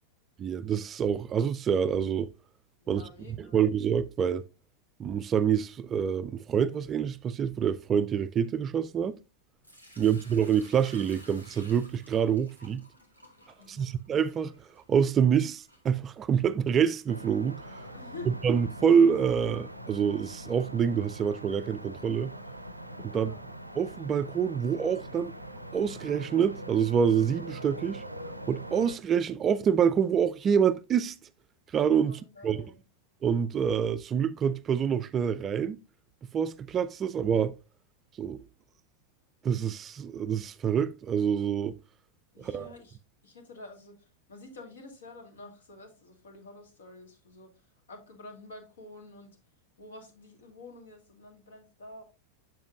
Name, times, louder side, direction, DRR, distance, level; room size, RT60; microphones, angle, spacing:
voice 1, 0.4-2.3 2.9-3.0 3.5-4.5 5.0-9.2 10.0-12.8 13.7-14.5 14.9-17.6 18.4-22.3 23.0-23.3 23.8-25.3 25.7-28.0 28.5-31.2 31.7-32.6 33.2-35.8 36.3-37.5 38.2-38.5 39.4-41.8 42.4-42.7, right 7 dB, 25° right, 0.3 m, -26 dB
voice 2, 2.8-3.6 9.9-10.2 13.6-13.9 17.9-18.3 23.1-23.5 32.0-32.8 42.3-43.0 43.2-49.4 49.8-52.0, left 2 dB, 65° left, 1.6 m, -49 dB
Sink (filling or washing) / Liquid, 9.6-16.6, equal, 90° left, 1.7 m, -55 dB
sound 1, 17.1-29.0, equal, 90° right, 0.5 m, -43 dB
7.5 x 7.1 x 2.4 m
figure-of-eight pair, 90°, 0 cm